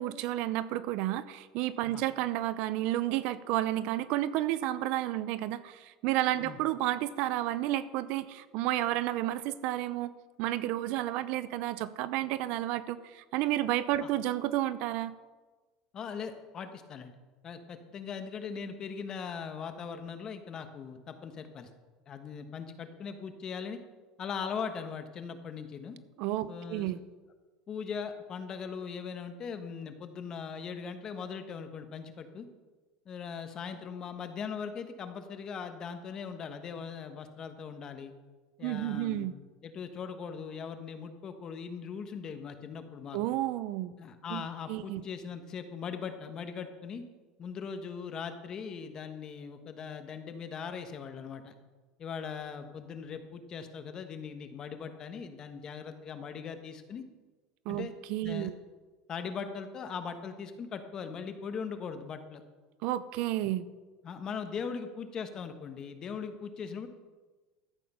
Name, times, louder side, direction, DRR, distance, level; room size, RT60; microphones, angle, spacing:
voice 1, 0.0-10.1 10.4-15.1 26.2-27.0 38.6-39.3 43.1-43.9 44.3-44.4 44.7-45.0 57.7-58.5 62.8-63.7, right 14 dB, 60° right, 15 dB, 0.6 m, -31 dB
voice 2, 15.9-17.1 17.4-21.7 22.1-23.8 24.2-26.0 26.5-27.0 27.7-32.5 33.0-38.1 38.6-39.3 39.6-43.2 44.0-47.0 47.4-51.5 52.0-57.0 57.7-57.9 58.2-58.5 59.1-62.4 64.0-66.9, left 6 dB, 30° left, 8 dB, 1.2 m, -40 dB
13.5 x 8.5 x 5.6 m, 1.3 s
supercardioid pair, 140°, 2 cm